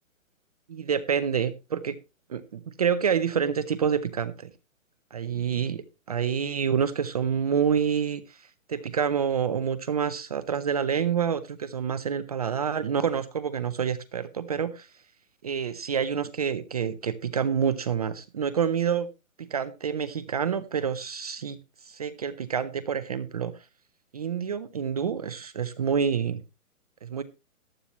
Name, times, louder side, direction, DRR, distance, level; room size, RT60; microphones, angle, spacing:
voice 1, 0.7-2.0 2.3-4.5 5.1-8.4 8.7-14.9 15.4-19.1 19.4-21.6 21.9-23.5 24.1-26.4 27.0-27.2, right 7 dB, 30° right, 14 dB, 0.5 m, -27 dB
14.5 x 11.0 x 3.0 m, 0.27 s
hypercardioid pair, 155°, 42 cm